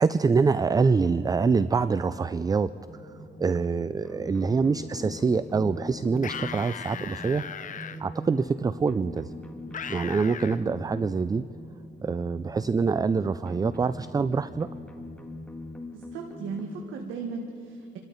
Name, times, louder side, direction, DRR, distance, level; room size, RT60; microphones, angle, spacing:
voice 1, 0.0-2.7 3.4-7.4 8.0-9.3 9.9-11.4 12.0-14.7, right 5 dB, 20° right, 15 dB, 0.3 m, -25 dB
sound 1, 2.8-16.9, left 1 dB, 5° left, 1.7 m, -42 dB
sound 2, 6.2-8.0 9.7-10.6, left 7 dB, 40° left, 0.7 m, -37 dB
voice 2, 15.9-18.0, right 4 dB, 85° right, 3 dB, 1.4 m, -36 dB
27.5 x 13.0 x 4.0 m, 2.6 s
cardioid pair, 90°, 20 cm